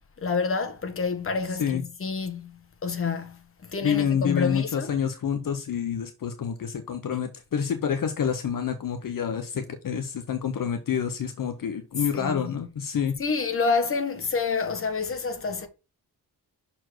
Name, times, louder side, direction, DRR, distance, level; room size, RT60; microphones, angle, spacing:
voice 1, 0.2-4.9 12.1-12.7 13.2-15.7, left 4 dB, 35° left, 1.1 m, -28 dB
voice 2, 3.8-13.1, left 7 dB, 55° left, 0.9 m, -28 dB
6.3 x 4.4 x 4.5 m
wide cardioid pair, 130°, 39 cm